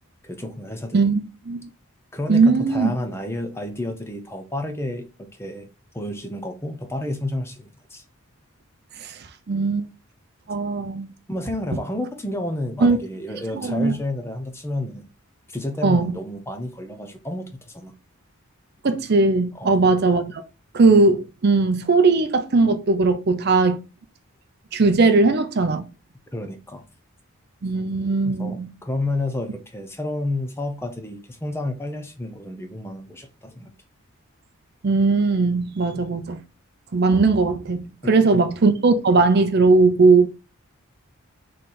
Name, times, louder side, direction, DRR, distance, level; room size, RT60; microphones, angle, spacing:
voice 1, 0.2-1.0 2.1-5.7 5.9-8.0 11.3-15.1 15.5-17.9 19.5-19.9 26.3-26.8 28.2-33.7 38.0-38.4, left 1 dB, 10° left, 0.6 m, -30 dB
voice 2, 0.9-1.7 2.3-2.9 9.0-9.2 9.5-9.9 10.5-11.1 12.8-13.0 13.5-14.0 15.8-16.2 18.8-20.4 20.7-23.8 24.7-25.8 27.6-28.7 34.8-36.4 36.9-40.3, right 3 dB, 45° right, 0.5 m, -19 dB
4.2 x 3.2 x 3.8 m
head